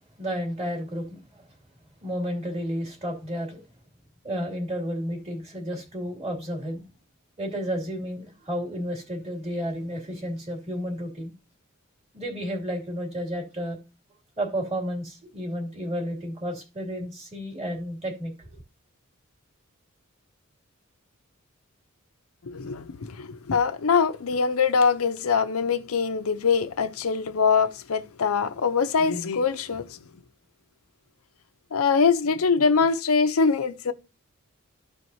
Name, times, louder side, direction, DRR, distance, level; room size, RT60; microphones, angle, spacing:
voice 1, 0.2-1.5 2.0-3.6 4.2-6.8 7.4-11.3 12.1-13.8 14.4-18.5, equal, 30° right, 2.6 m, -32 dB
voice 2, 22.4-29.9 31.7-33.9, left 5 dB, 85° left, 0.6 m, -23 dB
13.5 x 4.5 x 2.7 m
head